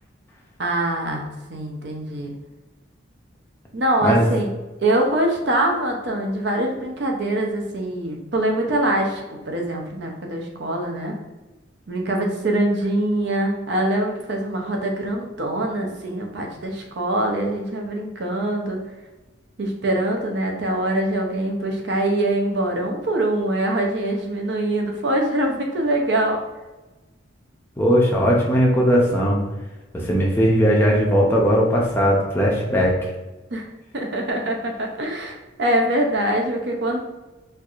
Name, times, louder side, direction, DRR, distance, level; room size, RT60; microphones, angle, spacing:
voice 1, 0.6-2.3 3.7-4.5 4.8-11.2 11.9-18.8 19.6-26.4 33.5-33.6 33.9-37.0, right 1 dB, 60° right, 1 dB, 0.6 m, -23 dB
voice 2, 27.8-29.4 29.9-33.0, equal, 10° left, -3 dB, 0.5 m, -18 dB
4.5 x 2.6 x 2.4 m, 1.1 s
head